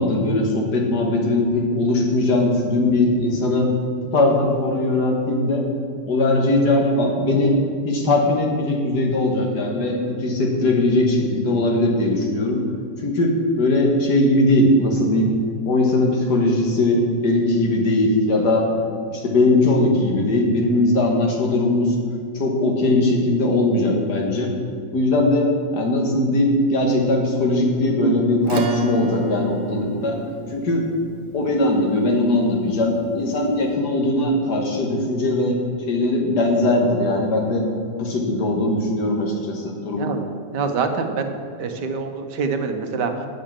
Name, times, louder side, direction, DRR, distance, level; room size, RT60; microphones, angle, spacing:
voice 1, 0.0-3.7 4.1-5.6 6.0-7.6 7.8-12.6 13.0-15.3 15.7-18.6 19.1-21.9 22.3-24.5 24.9-25.5 25.7-30.1 30.5-30.8 31.3-35.6 35.9-37.6 38.0-40.1, left 2 dB, 75° left, 0 dB, 2.1 m, -20 dB
Acoustic guitar / Strum, 28.4-33.4, right 1 dB, 60° right, 1.2 m, -30 dB
voice 2, 40.5-41.3 41.6-43.3, right 5 dB, 85° right, 6 dB, 1.5 m, -25 dB
8.5 x 6.6 x 7.4 m, 2.3 s
omnidirectional pair, 1.8 m